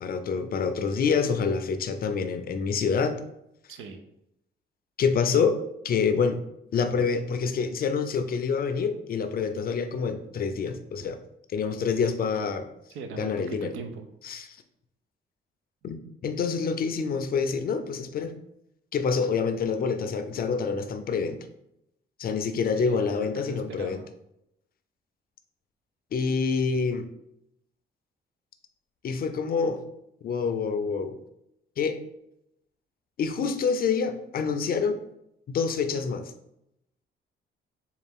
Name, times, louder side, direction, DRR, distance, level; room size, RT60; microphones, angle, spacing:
voice 1, 0.0-3.2 5.0-5.6 5.8-6.4 6.7-11.2 11.5-12.7 13.2-13.7 14.2-14.5 15.8-16.0 16.2-18.3 18.9-21.4 22.2-24.0 26.1-27.0 29.0-29.8 30.2-31.2 31.8-32.0 33.2-35.0 35.5-36.3, left 5 dB, 50° left, 9 dB, 0.4 m, -27 dB
voice 2, 3.7-4.0 12.9-14.1 22.7-24.0, right 4 dB, 85° right, 7 dB, 0.5 m, -40 dB
3.9 x 2.3 x 3.6 m, 0.82 s
cardioid pair, 90°, 20 cm